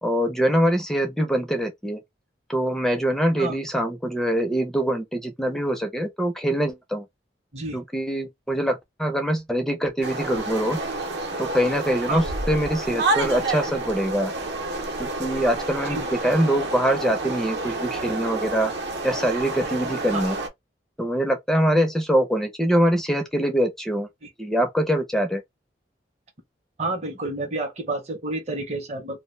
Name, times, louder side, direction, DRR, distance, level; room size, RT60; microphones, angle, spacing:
voice 1, 0.0-2.0 2.5-7.1 7.7-10.8 11.4-14.3 15.0-18.7 19.0-20.4 21.0-24.1 24.4-25.4, equal, 5° left, 0.4 m, -24 dB
sound 1, 10.0-20.5, right 2 dB, 70° right, 0.7 m, -29 dB
voice 2, 26.8-29.2, right 2 dB, 40° right, 0.7 m, -29 dB
2.1 x 2.1 x 3.1 m
head